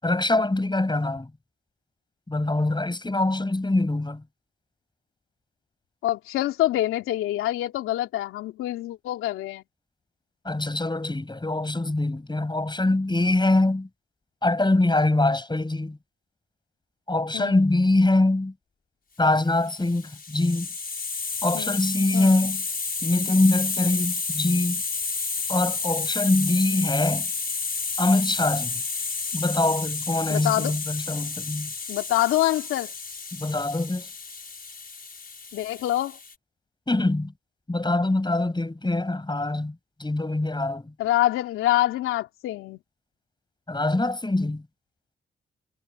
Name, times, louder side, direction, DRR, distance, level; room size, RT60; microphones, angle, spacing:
voice 1, 0.0-1.3 2.3-4.2 10.4-13.9 14.4-16.0 17.1-18.5 19.2-20.7 21.4-22.6 23.0-24.8 25.5-27.3 28.0-28.8 29.3-31.7 33.3-34.1 36.9-37.3 37.7-40.9 43.7-44.6, left 2 dB, 20° left, 6.8 m, -24 dB
voice 2, 6.0-9.6 17.3-17.6 21.5-21.8 22.1-22.4 30.3-30.8 31.9-32.9 35.5-36.2 41.0-42.8, left 14 dB, 85° left, 3.0 m, -25 dB
Hiss, 19.7-36.3, left 4 dB, 45° left, 5.9 m, -31 dB
hypercardioid pair, 40°, 21 cm